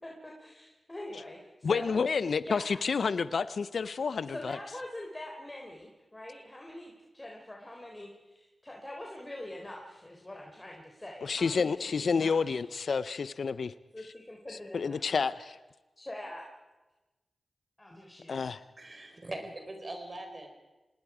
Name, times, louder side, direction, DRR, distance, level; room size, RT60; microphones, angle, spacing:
voice 1, 0.0-1.9 2.4-3.0 4.3-12.6 13.9-15.1 16.0-16.4 17.8-18.5, left 1 dB, 25° left, 0 dB, 3.6 m, -44 dB
voice 2, 1.6-4.6 11.2-13.7 14.5-15.6 18.3-18.6, left 5 dB, 80° left, 15 dB, 0.5 m, -29 dB
voice 3, 18.8-20.5, right 2 dB, 45° right, 4 dB, 4.6 m, -41 dB
27.0 x 19.5 x 4.9 m, 1.1 s
cardioid pair, 50°, 0 cm